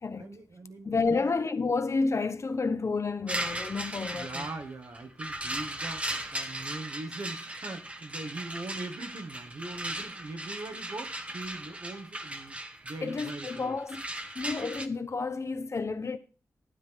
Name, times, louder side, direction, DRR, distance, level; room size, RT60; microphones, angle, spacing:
voice 1, 0.2-1.3 4.1-12.6 12.8-13.8, right 2 dB, 75° right, 2.0 m, -41 dB
voice 2, 0.8-4.5 13.0-14.0 14.3-16.2, left 4 dB, 50° left, 1.0 m, -30 dB
sound 1, 3.3-14.9, right 1 dB, 20° right, 1.0 m, -37 dB
12.0 x 10.0 x 3.7 m
wide cardioid pair, 80°, 6 cm